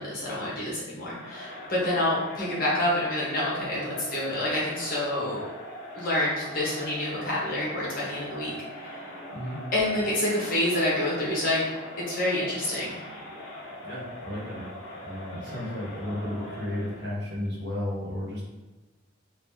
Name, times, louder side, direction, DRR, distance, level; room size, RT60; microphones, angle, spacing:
voice 1, 0.0-5.4 5.9-9.1 9.7-11.6 12.1-13.0 15.4-15.5, left 1 dB, 45° left, -7 dB, 1.1 m, -28 dB
Crowd, 1.0-17.1, equal, 70° left, 0.9 m, -41 dB
voice 2, 13.8-14.6 15.0-18.5, left 1 dB, 55° right, -6 dB, 1.2 m, -33 dB
2.9 x 2.7 x 3.7 m, 1.1 s
head